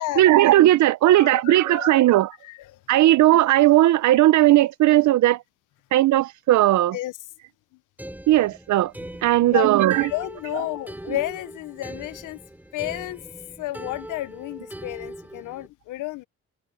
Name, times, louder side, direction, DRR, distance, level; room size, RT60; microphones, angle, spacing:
voice 1, 0.2-2.3 2.9-5.4 5.9-7.0 8.3-8.9 9.2-10.1, right 15 dB, 70° right, 0.7 m, -17 dB
voice 2, 1.1-2.1 2.4-2.8 6.9-7.1 9.4-9.7 10.0-12.4 12.7-13.2 13.6-16.3, left 17 dB, 85° left, 0.8 m, -31 dB
sound 1, 8.0-15.7, right 1 dB, 5° right, 4.0 m, -41 dB
cardioid pair, 90°, 30 cm